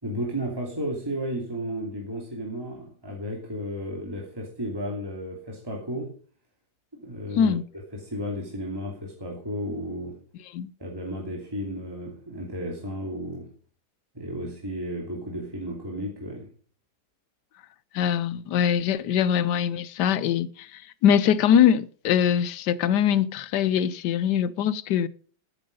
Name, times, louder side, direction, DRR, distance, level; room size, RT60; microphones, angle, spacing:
voice 1, 0.0-6.1 6.9-7.5 7.9-10.2 10.8-13.5 14.1-16.5, equal, 15° right, 2.8 m, -33 dB
voice 2, 17.9-25.1, left 9 dB, 75° left, 1.3 m, -22 dB
13.5 x 9.5 x 5.3 m
omnidirectional pair, 1.9 m